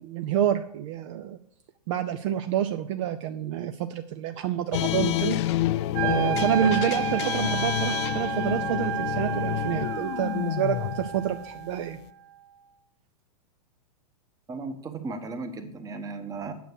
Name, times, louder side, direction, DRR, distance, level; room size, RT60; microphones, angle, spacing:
voice 1, 0.0-1.4 1.9-5.4 6.0-12.0, right 10 dB, 45° right, 9 dB, 0.6 m, -28 dB
sound 1, 4.7-12.1, left 14 dB, 45° left, 0.4 m, -29 dB
Wind instrument woodwind instrument, 5.9-12.0, right 7 dB, 60° right, 1.1 m, -31 dB
voice 2, 14.5-16.5, right 3 dB, 15° right, 8 dB, 1.1 m, -35 dB
9.2 x 6.2 x 6.4 m, 0.69 s
hypercardioid pair, 130°, 21 cm